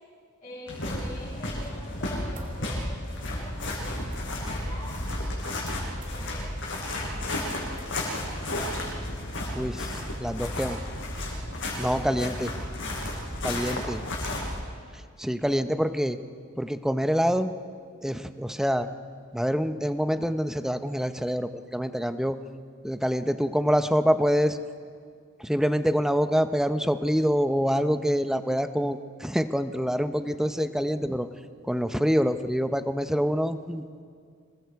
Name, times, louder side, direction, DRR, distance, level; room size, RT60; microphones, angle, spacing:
voice 1, 0.4-5.1 5.9-7.5 12.0-12.3, left 1 dB, 30° left, -10 dB, 7.4 m, -45 dB
sound 1, 0.7-14.6, left 1 dB, 60° left, 5.7 m, -32 dB
sound 2, 2.3-2.5 4.0-4.2 6.0-6.2 7.7-8.0, right 3 dB, 40° right, 2.9 m, -51 dB
voice 2, 9.5-9.9 10.2-10.8 11.8-12.5 13.4-14.0 15.2-16.2 16.6-17.5 18.0-18.9 19.3-22.4 22.8-24.6 25.4-31.3 31.7-33.8, equal, ahead, 10 dB, 0.6 m, -26 dB
27.0 x 22.0 x 4.7 m, 2.1 s
head